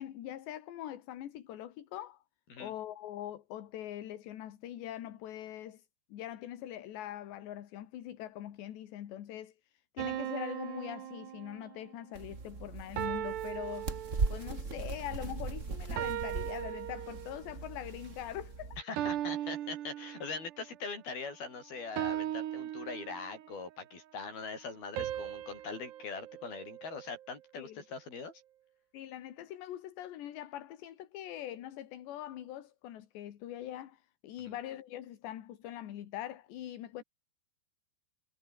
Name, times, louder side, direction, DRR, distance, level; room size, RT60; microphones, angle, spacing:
voice 1, 0.0-2.2 2.6-5.8 6.1-13.9 14.3-18.8 27.6-27.8 28.9-37.0, left 12 dB, 70° left, 4.0 m, -43 dB
sound 1, 10.0-11.9 13.0-14.6 16.0-17.5 19.0-20.6 22.0-23.6 25.0-27.3, right 12 dB, 70° right, 3.7 m, -38 dB
sound 2, 12.1-18.8, right 4 dB, 30° right, 1.3 m, -39 dB
voice 2, 18.8-28.3 34.5-34.6, left 4 dB, 55° left, 9.1 m, -42 dB
omnidirectional pair, 5.3 m